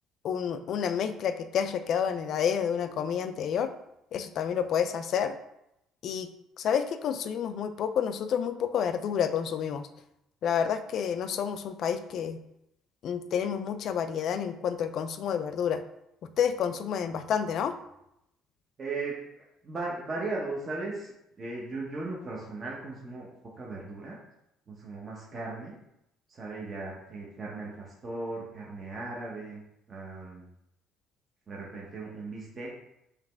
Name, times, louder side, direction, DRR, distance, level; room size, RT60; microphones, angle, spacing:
voice 1, 0.2-3.7 4.1-5.4 6.0-6.3 6.6-9.9 10.4-12.4 13.0-15.8 16.4-17.7, left 8 dB, 45° left, 10 dB, 0.3 m, -29 dB
voice 2, 18.8-23.3 23.6-24.2 24.7-25.7 26.3-29.6 29.9-30.5 31.5-32.7, right 3 dB, 25° right, -4 dB, 0.7 m, -37 dB
4.9 x 3.0 x 3.3 m, 0.82 s
cardioid pair, 160°, 0 cm